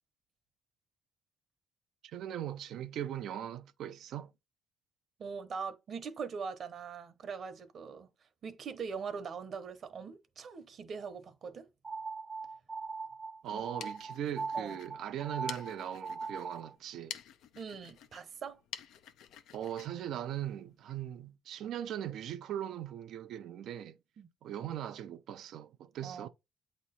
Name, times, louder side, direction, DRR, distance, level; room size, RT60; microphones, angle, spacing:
voice 1, 2.0-4.3 13.4-17.2 19.5-24.0 24.4-26.3, right 10 dB, 80° right, 0.5 m, -39 dB
voice 2, 5.2-8.1 8.4-11.7 13.5-13.6 14.5-14.8 17.6-18.6 24.2-24.3 26.0-26.3, right 6 dB, 55° right, 0.9 m, -42 dB
sound 1, 11.8-16.7, right 4 dB, 25° right, 0.5 m, -40 dB
sound 2, 13.5-21.0, left 9 dB, 85° left, 0.5 m, -50 dB
8.2 x 3.0 x 4.1 m
cardioid pair, 90°, 0 cm